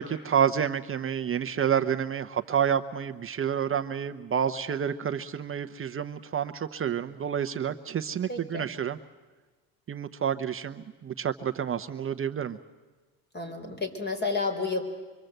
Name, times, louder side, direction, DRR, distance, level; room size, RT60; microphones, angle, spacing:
voice 1, 0.0-9.0 9.9-12.6, right 8 dB, 35° right, 8 dB, 0.8 m, -29 dB
voice 2, 8.3-8.7 13.3-14.8, left 3 dB, 25° left, 5 dB, 4.0 m, -31 dB
25.5 x 24.0 x 7.9 m, 1.3 s
cardioid pair, 115°, 38 cm